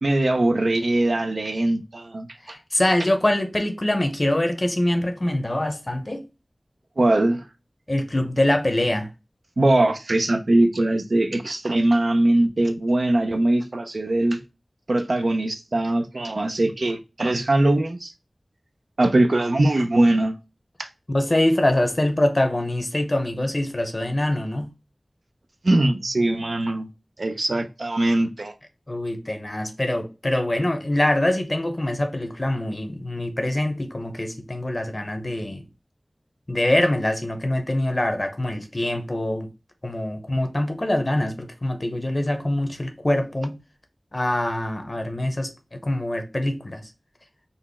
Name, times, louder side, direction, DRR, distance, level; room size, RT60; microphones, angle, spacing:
voice 1, 0.0-2.3 7.0-7.5 9.6-14.4 14.9-18.1 19.0-20.4 20.8-20.9 25.6-26.9 27.2-28.5, right 1 dB, 80° right, 0.4 m, -21 dB
voice 2, 2.4-6.2 7.9-9.1 21.1-24.7 28.9-35.7 36.5-39.5 39.8-43.6 44.1-46.8, left 1 dB, 45° left, 0.7 m, -24 dB
4.0 x 2.1 x 3.4 m
wide cardioid pair, 50°, 0 cm